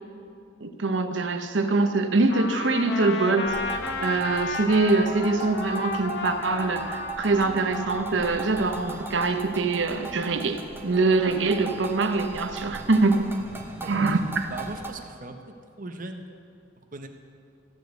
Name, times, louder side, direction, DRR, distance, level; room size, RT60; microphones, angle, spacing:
voice 1, 0.6-13.2 13.9-14.5, right 3 dB, 80° right, 7 dB, 0.8 m, -24 dB
Trumpet, 2.3-9.4, left 4 dB, 70° left, 0.9 m, -34 dB
sound 1, 3.4-14.9, right 4 dB, 15° right, 1.0 m, -39 dB
voice 2, 14.5-16.3 16.9-17.1, right 2 dB, 45° right, 5 dB, 0.9 m, -39 dB
14.0 x 5.2 x 8.0 m, 2.3 s
head